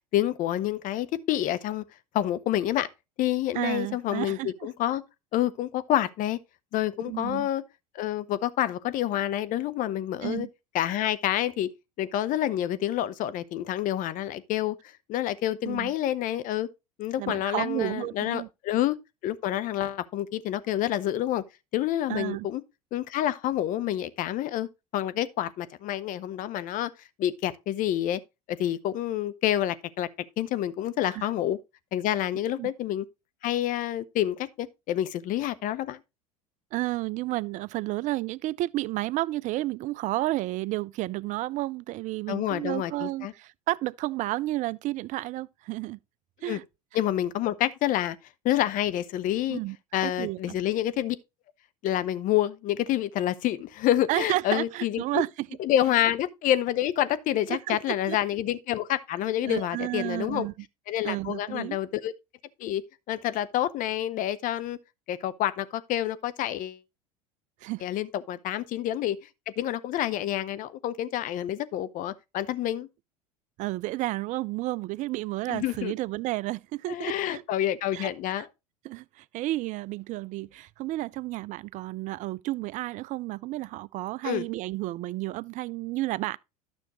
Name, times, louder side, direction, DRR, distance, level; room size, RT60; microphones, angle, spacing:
voice 1, 0.0-1.8 2.1-2.9 3.2-5.0 5.3-6.4 6.7-7.6 7.9-10.5 10.7-11.7 12.0-14.8 15.1-16.7 17.0-19.0 19.2-21.4 21.7-22.6 22.9-24.7 24.9-26.9 27.2-28.2 28.5-30.1 30.4-31.6 31.9-33.1 33.4-36.0 42.3-43.3 46.4-46.6 46.9-48.2 48.4-49.6 49.9-51.2 51.8-55.2 55.6-60.5 60.9-62.1 62.6-62.8 63.1-64.8 65.1-66.8 67.8-69.2 69.5-72.9 75.5-75.9 76.9-78.5 84.2-84.4, left 12 dB, 45° left, 0.8 m, -28 dB
voice 2, 3.5-4.7 7.1-7.5 10.2-10.5 15.6-15.9 17.2-18.5 22.1-22.5 31.0-31.3 32.6-32.7 36.7-46.0 46.4-46.6 49.5-49.8 50.0-50.6 54.1-55.5 57.5-58.2 59.4-60.5 61.0-61.8 67.6-67.9 73.6-77.4 77.9-78.1 78.8-86.4, right 17 dB, 45° right, 0.4 m, -31 dB
12.0 x 6.2 x 3.0 m
hypercardioid pair, 75°, 19 cm